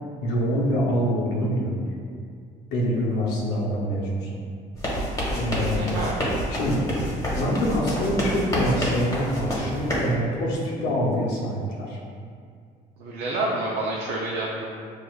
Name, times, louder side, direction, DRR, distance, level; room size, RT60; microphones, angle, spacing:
voice 1, 0.2-1.8 2.7-4.3 5.4-5.9 6.5-6.8 7.3-12.0, equal, 90° left, -4 dB, 0.8 m, -25 dB
sound 1, 4.8-10.1, equal, 20° left, 1.1 m, -28 dB
voice 2, 5.7-6.2 13.0-14.7, right 2 dB, 80° right, -3 dB, 0.5 m, -28 dB
6.2 x 2.4 x 2.3 m, 2.1 s
cardioid pair, 110°, 17 cm